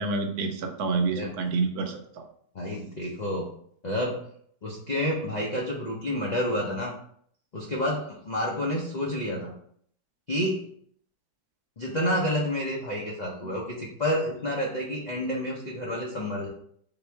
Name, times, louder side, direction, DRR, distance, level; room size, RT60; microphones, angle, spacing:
voice 1, 0.0-2.2, right 4 dB, 70° right, 5 dB, 1.1 m, -28 dB
voice 2, 2.5-3.5 3.8-4.2 4.6-6.9 7.5-9.5 10.3-10.6 11.8-16.5, left 1 dB, 70° left, -3 dB, 0.4 m, -29 dB
3.6 x 3.0 x 4.4 m, 0.63 s
omnidirectional pair, 1.8 m